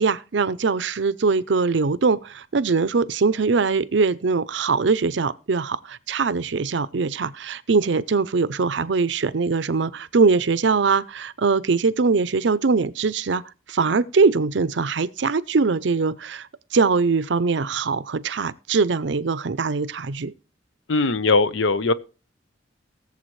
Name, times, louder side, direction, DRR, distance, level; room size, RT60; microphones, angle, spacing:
voice 1, 0.0-13.4 13.7-16.5 16.7-20.3, right 4 dB, 65° right, 0.6 m, -22 dB
voice 2, 20.9-21.9, left 3 dB, 75° left, 0.7 m, -20 dB
18.5 x 7.2 x 3.2 m
head